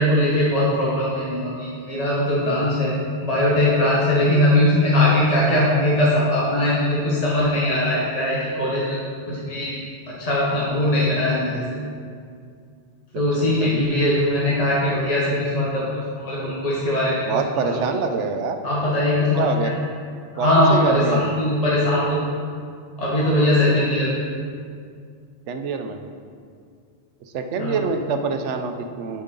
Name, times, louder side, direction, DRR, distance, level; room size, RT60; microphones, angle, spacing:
voice 1, 0.0-2.9 3.2-9.0 9.3-9.8 10.1-11.6 13.1-17.2 17.6-18.0 18.6-19.7 20.3-22.2 23.0-24.1 27.6-27.9, left 1 dB, 35° left, -6 dB, 1.2 m, -20 dB
voice 2, 13.1-13.8 17.3-18.6 19.4-19.7 20.4-21.4 25.5-26.0 27.3-29.2, right 5 dB, 85° right, 6 dB, 1.0 m, -25 dB
10.0 x 4.9 x 3.8 m, 2.2 s
omnidirectional pair, 1.2 m